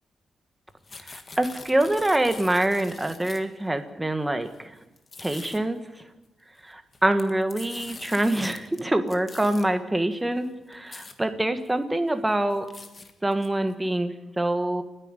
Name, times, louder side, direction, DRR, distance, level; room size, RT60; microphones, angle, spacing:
sound 1, 0.7-3.6 4.4-4.6 5.0-5.6 6.8-8.8 9.1-9.7 10.4-10.5 10.7-11.1 11.7-11.8 12.1-13.7, left 3 dB, 25° left, 1.7 m, -44 dB
voice 1, 1.0-4.7 5.2-5.8 6.6-12.6 13.2-14.8, right 1 dB, 10° right, 7 dB, 1.4 m, -25 dB
30.0 x 10.0 x 9.0 m, 0.98 s
wide cardioid pair, 165°, 0 cm